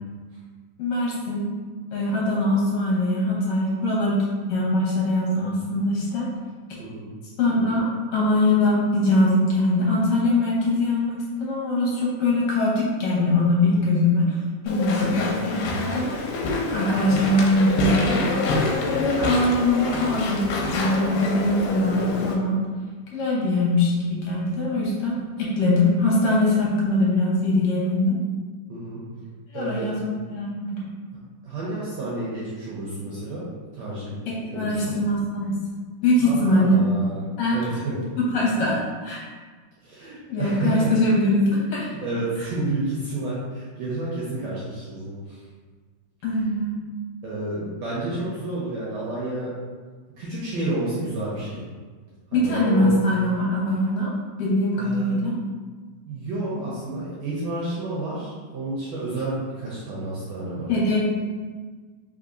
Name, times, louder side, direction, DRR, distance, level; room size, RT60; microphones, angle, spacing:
voice 1, 0.8-1.5 1.9-6.3 7.4-7.9 8.1-14.4 14.6-16.1 16.7-18.2 18.9-22.6 23.1-28.2 29.5-30.8 34.3-35.6 36.0-36.8 37.4-37.6 38.2-39.2 40.3-41.9 46.2-46.8 52.3-54.1 54.4-55.3 60.7-61.0, left 1 dB, 65° left, -5 dB, 1.9 m, -22 dB
Walk footsteps / Chatter / Squeak, 14.7-22.3, left 3 dB, 85° left, 2.2 m, -26 dB
voice 2, 15.0-15.3 28.7-29.0 29.5-29.9 31.4-33.4 33.7-34.2 34.5-35.0 36.2-37.2 37.5-37.9 39.8-40.9 42.0-45.4 47.2-49.5 50.2-51.6 52.3-53.0 54.8-55.2 56.1-60.7, right 2 dB, 70° right, -8 dB, 1.7 m, -30 dB
4.7 x 3.4 x 2.6 m, 1.4 s
omnidirectional pair, 3.8 m